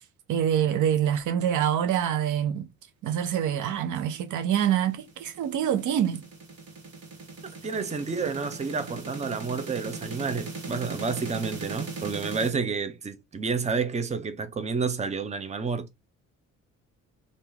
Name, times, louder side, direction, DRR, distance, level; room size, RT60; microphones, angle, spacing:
voice 1, 0.3-2.7 3.0-6.2, right 9 dB, 80° right, 0.7 m, -25 dB
sound 1, 4.4-12.5, right 4 dB, 55° right, 1.6 m, -39 dB
voice 2, 7.6-15.9, right 5 dB, 20° right, 0.6 m, -30 dB
2.9 x 2.6 x 3.7 m
cardioid pair, 90°, 30 cm